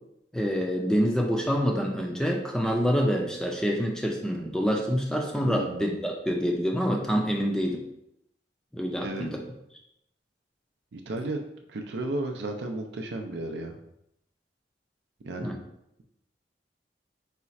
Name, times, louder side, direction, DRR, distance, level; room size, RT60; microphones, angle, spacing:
voice 1, 0.3-7.8 8.7-9.4 15.4-15.6, equal, 5° left, 0 dB, 0.4 m, -26 dB
voice 2, 5.4-5.9 9.0-9.3 10.9-13.8 15.2-15.5, right 2 dB, 70° right, 4 dB, 0.5 m, -34 dB
4.2 x 2.4 x 4.1 m, 0.79 s
head